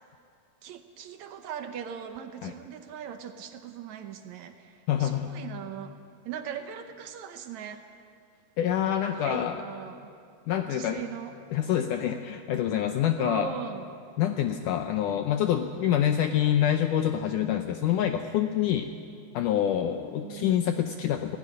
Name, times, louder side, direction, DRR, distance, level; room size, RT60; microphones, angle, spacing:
voice 1, 0.6-6.0 6.2-7.8 9.1-10.1 10.7-11.3 13.2-13.9 19.9-20.7, right 8 dB, 75° right, 7 dB, 1.7 m, -39 dB
voice 2, 4.9-5.3 8.6-9.6 10.5-11.0 11.5-13.5 14.2-18.9 19.3-21.4, left 10 dB, 85° left, 6 dB, 1.8 m, -26 dB
17.5 x 16.0 x 9.8 m, 2.4 s
omnidirectional pair, 4.4 m